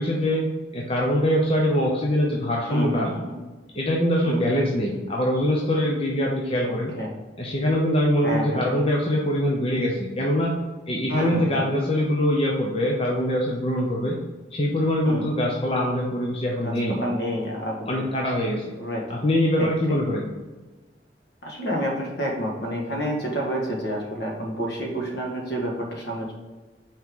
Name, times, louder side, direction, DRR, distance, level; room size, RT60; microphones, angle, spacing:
voice 1, 0.0-3.1 3.7-6.9 7.4-10.5 10.9-14.2 14.5-17.0 17.9-18.6 19.1-20.3, left 1 dB, 30° left, -2 dB, 0.7 m, -23 dB
voice 2, 2.7-3.4 4.2-4.4 6.6-7.1 8.2-8.8 11.1-11.6 15.0-15.3 16.6-18.0 18.8-19.0 19.6-19.7 21.4-26.3, equal, 65° left, -1 dB, 1.7 m, -29 dB
6.0 x 4.4 x 3.7 m, 1.3 s
head